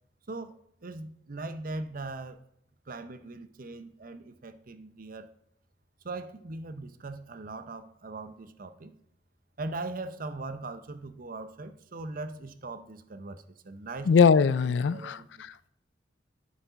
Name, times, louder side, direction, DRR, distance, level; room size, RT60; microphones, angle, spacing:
voice 1, 0.8-2.4 2.9-5.3 6.0-8.9 9.6-14.1 14.7-15.3, right 2 dB, 50° right, 0.7 m, -40 dB
voice 2, 14.1-15.7, left 6 dB, 90° left, 0.4 m, -22 dB
9.5 x 8.2 x 4.0 m
head